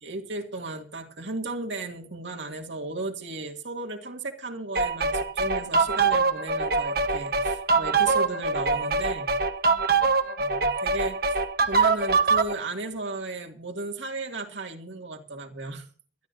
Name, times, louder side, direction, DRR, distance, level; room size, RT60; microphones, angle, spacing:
voice 1, 0.0-9.4 10.4-11.4 11.7-15.9, right 2 dB, 75° right, 3 dB, 2.4 m, -35 dB
sound 1, 4.8-12.5, right 4 dB, 50° right, 1.2 m, -24 dB
23.5 x 12.0 x 2.7 m, 0.43 s
head